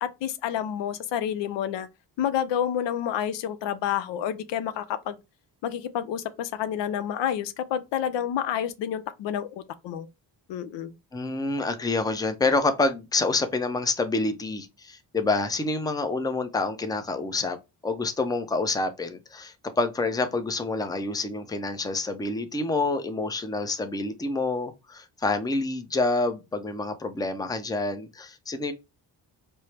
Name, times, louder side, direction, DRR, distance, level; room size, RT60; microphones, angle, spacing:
voice 1, 0.0-1.9 2.2-5.2 5.6-10.1 10.5-10.9, left 9 dB, 80° left, 0.5 m, -29 dB
voice 2, 11.1-17.6 17.8-28.7, left 3 dB, 10° left, 0.5 m, -27 dB
4.3 x 2.0 x 3.2 m
cardioid pair, 80°, 43 cm